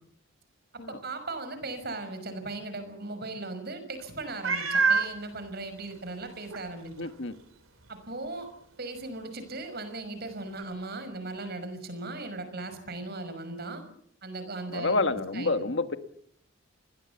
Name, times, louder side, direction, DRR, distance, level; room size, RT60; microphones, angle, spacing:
voice 1, 0.7-6.9 7.9-8.5 8.8-13.8 14.2-15.6, right 2 dB, 50° right, 10 dB, 5.7 m, -38 dB
Meow, 4.4-5.1 5.9-6.0 6.5-6.6 10.6-10.7, right 4 dB, 90° right, 3.1 m, -25 dB
voice 2, 7.0-7.3 14.7-16.0, left 3 dB, 60° left, 9 dB, 1.6 m, -28 dB
28.0 x 21.0 x 7.2 m, 0.68 s
head